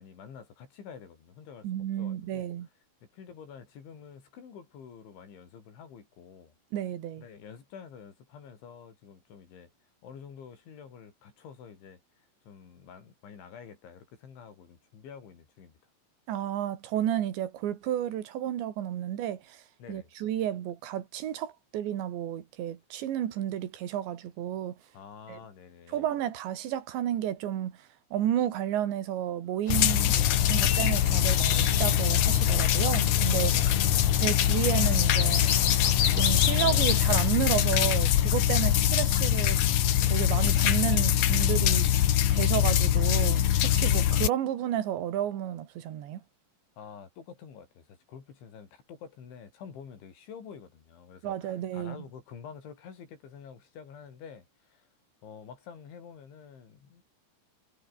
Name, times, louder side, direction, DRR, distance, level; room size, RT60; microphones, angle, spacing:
voice 1, 0.0-2.5 3.1-6.5 7.2-9.7 10.0-12.0 12.5-15.8 19.8-20.1 24.9-26.1 33.3-34.4 46.8-54.9 55.2-57.0, left 7 dB, 90° left, 7.1 m, -48 dB
voice 2, 1.6-2.7 6.7-7.3 16.3-19.6 19.9-24.8 25.3-25.4 25.9-27.8 28.1-33.5 34.2-35.7 36.1-39.6 40.0-41.9 42.3-46.2 51.2-52.0, right 11 dB, 80° right, 4.4 m, -31 dB
sound 1, 29.7-44.3, left 11 dB, 70° left, 1.7 m, -23 dB
sound 2, 29.7-37.0, left 8 dB, 50° left, 4.1 m, -34 dB
omnidirectional pair, 5.2 m